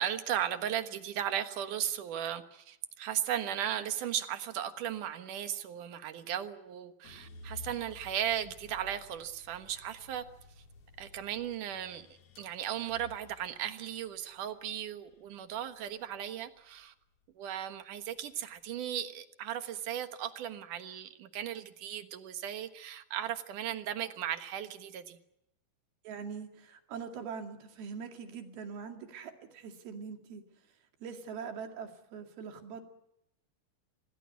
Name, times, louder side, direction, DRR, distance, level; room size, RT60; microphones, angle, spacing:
voice 1, 0.0-10.2 11.0-12.1 12.4-16.9 17.4-25.2, right 10 dB, 65° right, 9 dB, 2.7 m, -36 dB
sound 1, 7.0-17.2 17.7-18.5, left 4 dB, 45° left, 2.9 m, -54 dB
voice 2, 26.0-30.4 31.0-32.8, right 6 dB, 80° right, 5 dB, 4.2 m, -43 dB
26.5 x 18.0 x 9.5 m, 0.82 s
omnidirectional pair, 4.3 m